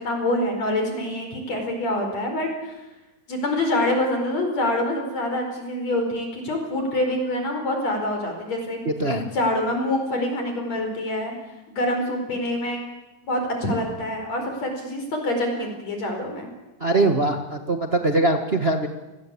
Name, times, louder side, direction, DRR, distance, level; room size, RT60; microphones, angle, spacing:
voice 1, 0.0-2.8 3.3-8.8 9.2-11.3 11.7-12.8 13.2-16.5, left 1 dB, 45° left, 4 dB, 6.1 m, -26 dB
voice 2, 8.8-9.3 16.8-18.9, right 2 dB, 70° right, 5 dB, 0.5 m, -22 dB
29.5 x 21.5 x 8.5 m, 1.1 s
omnidirectional pair, 4.1 m